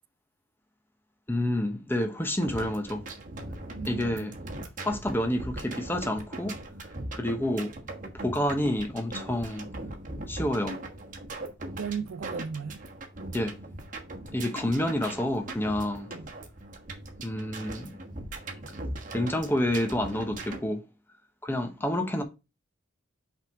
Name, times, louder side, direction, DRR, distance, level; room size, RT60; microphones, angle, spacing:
voice 1, 1.3-3.0 3.9-4.3 4.8-6.6 7.1-7.7 8.1-9.7 10.3-10.8 13.3-13.6 14.3-16.1 17.2-18.0 19.1-20.8 21.4-22.2, left 1 dB, 10° left, 0.8 m, -29 dB
sound 1, 2.4-20.6, right 2 dB, 40° right, 1.2 m, -40 dB
voice 2, 3.8-4.4 11.8-12.8 16.1-16.3, right 6 dB, 85° right, 0.5 m, -37 dB
5.6 x 3.7 x 5.8 m
head